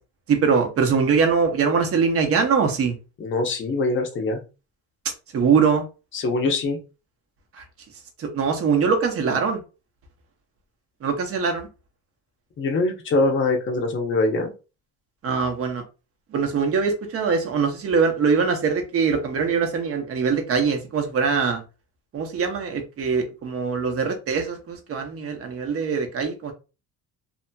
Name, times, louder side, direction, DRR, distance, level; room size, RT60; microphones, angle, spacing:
voice 1, 0.3-3.0 5.3-5.8 7.5-7.6 8.2-9.6 11.0-11.7 15.2-15.8 16.3-21.6 22.1-26.5, right 5 dB, 40° right, 0.8 m, -22 dB
voice 2, 3.2-4.4 6.1-6.8 12.6-14.5, left 3 dB, 35° left, 0.7 m, -23 dB
2.8 x 2.7 x 2.2 m
cardioid pair, 125°, 36 cm